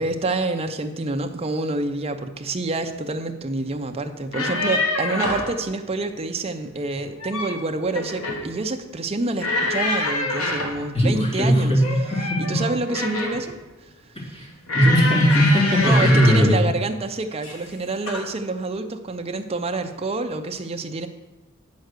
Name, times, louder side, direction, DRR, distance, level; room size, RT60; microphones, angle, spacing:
voice 1, 0.0-11.8 12.4-13.5 15.8-21.1, right 2 dB, 30° right, 6 dB, 0.6 m, -27 dB
sound 1, 4.2-5.5 7.0-7.6 7.9-8.5 9.4-10.8 11.8-13.5 14.7-16.5 17.4-17.7 18.1-18.3, left 2 dB, 70° left, 1.3 m, -26 dB
voice 2, 10.9-11.8 12.1-12.6 14.2-14.5 14.7-16.7, equal, 30° left, -5 dB, 2.5 m, -18 dB
9.3 x 4.6 x 6.6 m, 1.2 s
head